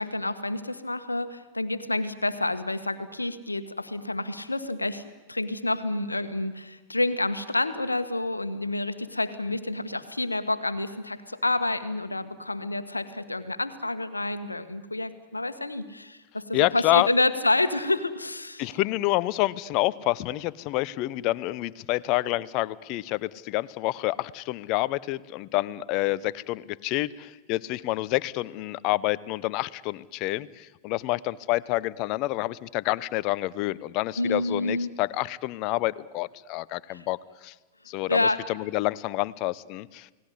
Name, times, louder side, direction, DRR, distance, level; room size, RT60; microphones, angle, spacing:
voice 1, 0.0-18.7 34.2-34.9 36.9-37.1 38.1-38.4, left 2 dB, 85° left, 12 dB, 1.5 m, -28 dB
voice 2, 16.5-17.1 18.6-37.5 37.9-40.1, left 18 dB, 40° left, 20 dB, 0.8 m, -28 dB
29.5 x 18.5 x 9.7 m, 1.2 s
figure-of-eight pair, 90°, 0 cm